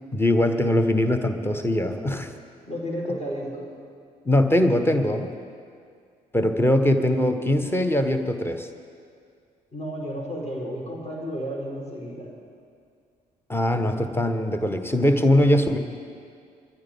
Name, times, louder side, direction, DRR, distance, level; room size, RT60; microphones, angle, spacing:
voice 1, 0.1-2.3 4.2-5.3 6.3-8.7 13.5-15.8, left 1 dB, 10° left, 8 dB, 1.2 m, -21 dB
voice 2, 2.7-3.7 9.7-12.3, equal, 35° left, -3 dB, 4.4 m, -32 dB
21.5 x 14.0 x 3.6 m, 2.2 s
figure-of-eight pair, 45°, 20 cm